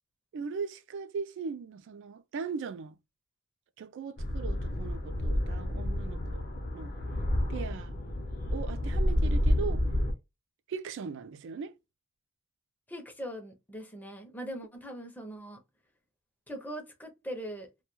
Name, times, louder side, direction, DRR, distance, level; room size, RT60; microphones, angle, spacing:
voice 1, 0.3-3.0 3.8-6.5 6.7-7.0 7.5-7.9 8.5-9.8 10.7-11.7, right 5 dB, 60° right, 0.3 m, -39 dB
sound 1, 4.2-10.1, left 1 dB, 45° left, 0.7 m, -30 dB
voice 2, 12.9-15.6 16.5-17.7, equal, 10° left, 0.5 m, -41 dB
2.2 x 2.2 x 2.9 m
head